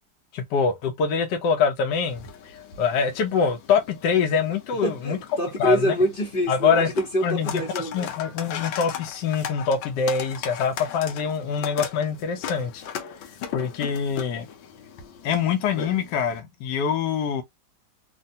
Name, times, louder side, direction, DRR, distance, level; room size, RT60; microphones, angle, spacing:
voice 1, 0.3-5.2 5.6-5.9 6.5-6.9 7.2-12.8 13.5-14.5 15.2-17.4, left 6 dB, 70° left, 1.2 m, -24 dB
sound 1, 1.9-16.4, left 8 dB, 90° left, 1.4 m, -38 dB
voice 2, 4.8-8.1, equal, 45° left, 0.7 m, -26 dB
3.3 x 2.3 x 2.6 m
omnidirectional pair, 2.0 m